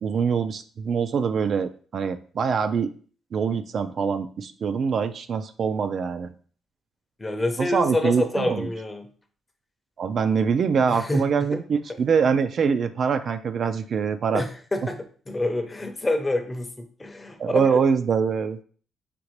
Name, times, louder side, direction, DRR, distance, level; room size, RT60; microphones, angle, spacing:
voice 1, 0.0-2.9 3.3-6.3 7.6-8.7 10.0-14.4 17.4-18.6, right 6 dB, 50° right, 10 dB, 0.3 m, -24 dB
voice 2, 7.2-9.1 10.9-11.3 14.3-17.8, left 2 dB, 20° left, 6 dB, 0.7 m, -27 dB
5.1 x 2.8 x 3.1 m, 0.44 s
cardioid pair, 115°, 0 cm